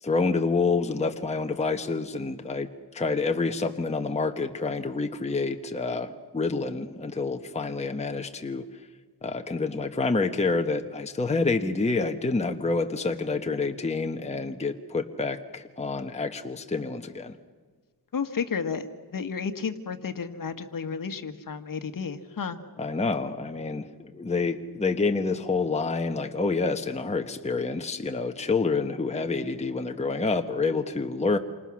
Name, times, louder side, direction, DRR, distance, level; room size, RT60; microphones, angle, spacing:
voice 1, 0.0-8.7 9.2-17.4 22.8-31.4, left 3 dB, 15° left, 5 dB, 1.1 m, -28 dB
voice 2, 18.1-22.6, left 6 dB, 50° left, 8 dB, 1.7 m, -32 dB
28.5 x 26.0 x 6.3 m, 1.5 s
wide cardioid pair, 125°, 42 cm